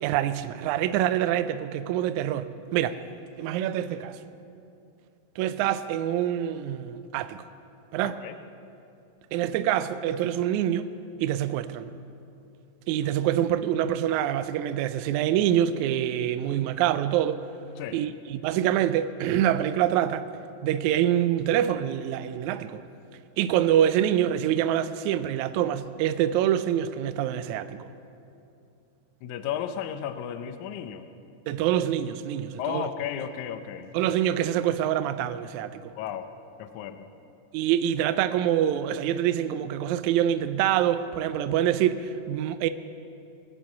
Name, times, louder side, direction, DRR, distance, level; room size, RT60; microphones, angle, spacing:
voice 1, 0.0-3.0 3.4-4.2 5.4-7.4 7.9-8.2 9.3-10.9 11.2-11.9 12.9-17.4 17.9-20.3 20.6-22.8 23.4-27.9 31.5-32.9 33.9-35.9 37.5-42.7, right 11 dB, 80° right, 1.9 m, -25 dB
voice 2, 8.0-8.4 17.8-18.0 29.2-31.1 32.6-33.9 36.0-36.3 36.6-37.1, left 9 dB, 80° left, 2.0 m, -34 dB
20.5 x 7.1 x 8.3 m
omnidirectional pair, 3.5 m